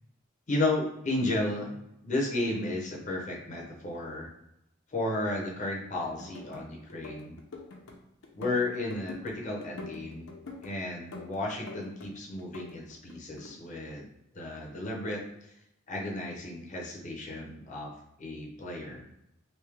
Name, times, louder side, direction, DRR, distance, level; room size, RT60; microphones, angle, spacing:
voice 1, 0.5-1.7 2.0-4.3 4.9-7.4 8.3-10.3 10.6-14.1 14.3-15.5 15.9-17.9 18.2-19.1, left 2 dB, 35° left, -2 dB, 0.6 m, -33 dB
sound 1, 6.0-6.6 6.9-8.0 8.2-9.3 9.6-10.7 11.1-12.1 12.4-13.5, left 3 dB, 90° left, 0.7 m, -44 dB
3.3 x 2.7 x 3.3 m, 0.84 s
head